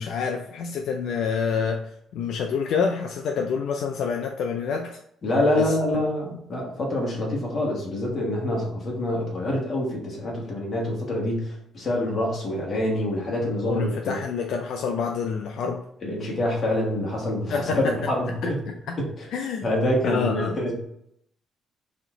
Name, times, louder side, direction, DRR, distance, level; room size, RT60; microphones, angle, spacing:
voice 1, 0.0-5.0 5.5-5.8 13.6-15.8 17.5-17.9 18.4-18.5 18.9-19.0 19.3-19.7 20.0-20.6, left 5 dB, 75° left, 3 dB, 0.4 m, -27 dB
voice 2, 5.2-14.2 16.0-18.6 19.0-19.2 19.6-20.8, left 1 dB, 40° left, -2 dB, 1.6 m, -26 dB
4.2 x 2.9 x 3.8 m, 0.72 s
cardioid pair, 130°, 0 cm